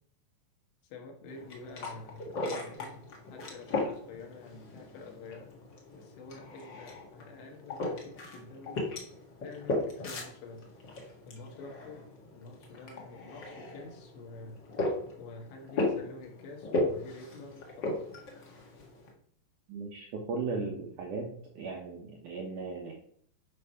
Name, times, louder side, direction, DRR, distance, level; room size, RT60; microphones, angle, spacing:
voice 1, 0.8-3.0 3.3-5.5 5.9-8.8 9.4-10.6 11.3-14.6 15.2-18.1, left 3 dB, 80° left, 3 dB, 3.7 m, -48 dB
sound 1, 1.3-19.1, left 2 dB, 65° left, 1.1 m, -37 dB
voice 2, 19.7-21.3 21.6-22.9, right 4 dB, 75° right, 1 dB, 1.9 m, -36 dB
10.5 x 4.8 x 5.6 m, 0.62 s
omnidirectional pair, 5.0 m